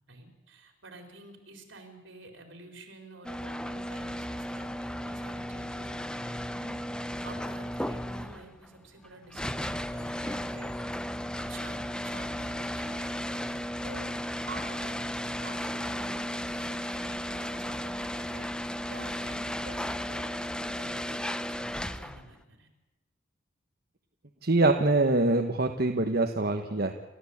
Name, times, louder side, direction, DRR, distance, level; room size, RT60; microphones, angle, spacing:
voice 1, 0.1-6.8 7.2-10.7 11.5-14.1 14.5-20.3 20.6-22.7, right 2 dB, 70° right, 4 dB, 4.5 m, -49 dB
sound 1, 3.2-22.3, equal, 5° left, 0.7 m, -35 dB
voice 2, 24.4-26.9, right 2 dB, 50° right, 4 dB, 1.3 m, -24 dB
29.5 x 13.5 x 8.6 m, 1.1 s
head